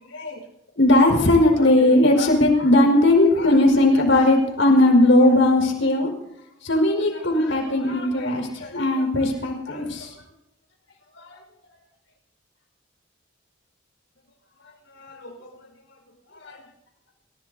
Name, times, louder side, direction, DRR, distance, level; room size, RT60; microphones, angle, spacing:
voice 1, 0.8-6.1 6.6-10.2 11.2-11.4 14.9-15.5 16.4-16.6, left 1 dB, 80° left, 1 dB, 5.2 m, -18 dB
29.5 x 16.5 x 2.8 m, 0.83 s
head